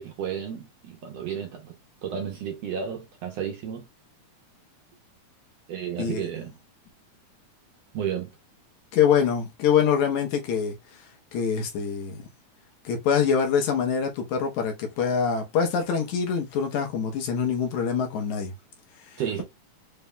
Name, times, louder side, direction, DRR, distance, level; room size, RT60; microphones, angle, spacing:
voice 1, 0.0-1.7 2.0-3.8 5.7-6.6 7.9-8.3 19.2-19.4, right 8 dB, 70° right, 1.7 m, -32 dB
voice 2, 8.9-10.8 11.3-12.2 12.9-18.5, left 7 dB, 75° left, 2.2 m, -24 dB
5.3 x 3.4 x 2.3 m
omnidirectional pair, 3.5 m